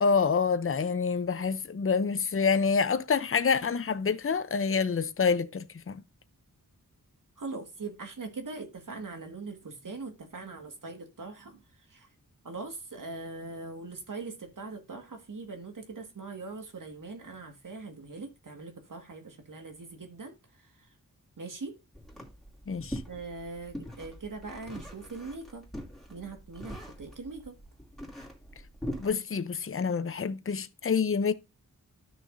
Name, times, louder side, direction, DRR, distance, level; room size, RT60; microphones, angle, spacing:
voice 1, 0.0-6.0 22.7-23.0 29.0-31.3, left 5 dB, 40° left, 0.7 m, -27 dB
voice 2, 7.4-11.6 11.9-12.1 12.4-20.7 21.4-21.8 23.1-25.6 26.1-27.5, right 3 dB, 65° right, 1.9 m, -41 dB
sound 1, 21.9-29.1, equal, ahead, 2.7 m, -42 dB
12.5 x 6.3 x 2.7 m
wide cardioid pair, 70°, 34 cm